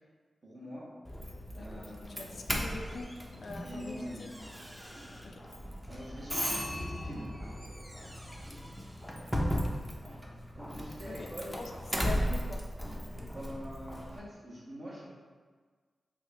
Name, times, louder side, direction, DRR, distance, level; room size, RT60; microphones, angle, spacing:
voice 1, 0.4-0.9 1.5-2.3 3.6-4.2 5.9-7.4 10.5-11.6 13.1-15.1, equal, 50° right, -6 dB, 1.2 m, -44 dB
Doorbell, 1.0-14.2, equal, 5° right, 0.6 m, -37 dB
voice 2, 1.5-3.2 3.4-4.1 5.2-5.4 11.1-11.3 11.6-11.7 12.0-12.6, left 3 dB, 60° left, 3 dB, 0.3 m, -43 dB
3.6 x 2.4 x 3.3 m, 1.5 s
supercardioid pair, 40°, 0 cm